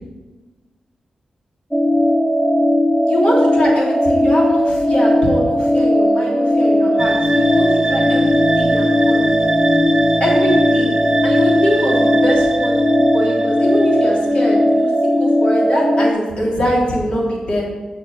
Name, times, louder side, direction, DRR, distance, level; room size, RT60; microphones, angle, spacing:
sound 1, 1.7-16.1, equal, 5° left, 1.2 m, -16 dB
voice 1, 3.1-9.3 10.2-10.9 11.2-17.6, equal, 55° left, -4 dB, 3.2 m, -22 dB
sound 2, 7.0-14.5, right 2 dB, 25° right, 0.7 m, -24 dB
6.7 x 6.2 x 7.6 m, 1.3 s
cardioid pair, 60°, 2 cm